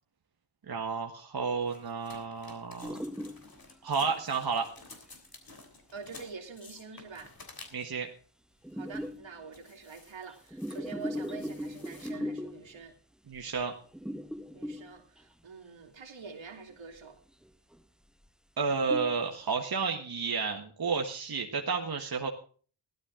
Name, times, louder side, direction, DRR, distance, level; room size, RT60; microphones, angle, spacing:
voice 1, 0.7-3.0 3.8-4.7 7.7-8.1 13.3-13.7 18.6-22.3, right 5 dB, 50° right, 1.5 m, -31 dB
sound 1, 1.6-8.0 8.6-9.2 9.5-12.1, left 3 dB, 45° left, 3.4 m, -53 dB
sound 2, 2.8-3.7 4.3-4.4 6.9-7.0 8.6-9.4 10.3-12.8 13.3-13.6 13.9-15.2 16.7-17.0 17.4-17.8 18.2-18.3 18.7-19.3, equal, ahead, 0.5 m, -38 dB
voice 2, 5.9-7.3 8.7-13.0 14.5-17.2, right 5 dB, 65° right, 2.5 m, -46 dB
14.5 x 12.0 x 3.8 m
cardioid pair, 50°, 48 cm